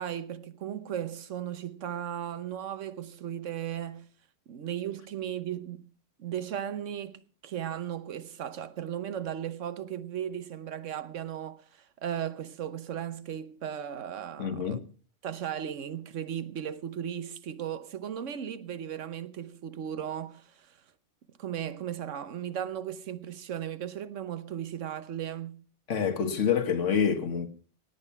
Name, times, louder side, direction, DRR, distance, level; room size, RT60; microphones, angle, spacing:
voice 1, 0.0-4.1 4.5-5.9 6.2-14.8 15.2-20.8 21.4-25.6, right 10 dB, 85° right, 1.2 m, -36 dB
voice 2, 14.4-14.8 25.9-27.5, left 7 dB, 85° left, 1.7 m, -27 dB
17.5 x 8.7 x 5.8 m
omnidirectional pair, 1.2 m